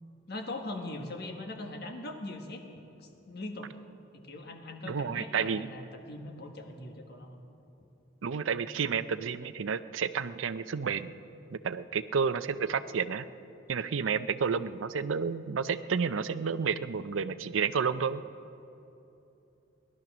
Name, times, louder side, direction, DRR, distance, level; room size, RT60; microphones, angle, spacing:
voice 1, 0.3-2.6 3.0-3.7 4.1-7.4, left 2 dB, 55° left, 4 dB, 1.5 m, -41 dB
voice 2, 4.8-5.7 8.2-11.1 11.5-13.3 13.7-18.2, right 6 dB, 90° right, 13 dB, 0.5 m, -31 dB
18.0 x 12.0 x 6.1 m, 2.9 s
head